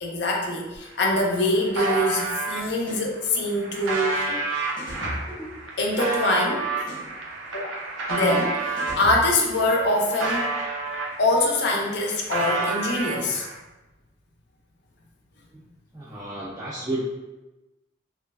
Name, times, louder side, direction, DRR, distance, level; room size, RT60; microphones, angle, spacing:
voice 1, 0.0-4.3 5.8-6.7 8.1-10.5 11.2-13.5, left 1 dB, 55° left, 0 dB, 0.4 m, -24 dB
sound 1, 0.7-0.8 1.1-2.6 3.2-9.0 9.5-11.4 11.7-13.6, right 3 dB, 80° right, 0.5 m, -29 dB
sound 2, 2.8-3.1 4.3-4.4 4.8-6.2 6.8-7.1 8.3-8.4 8.8-9.9, equal, 20° left, 0.8 m, -37 dB
voice 2, 15.9-17.1, right 1 dB, 15° right, -7 dB, 0.3 m, -32 dB
3.0 x 2.4 x 2.3 m, 1.0 s
head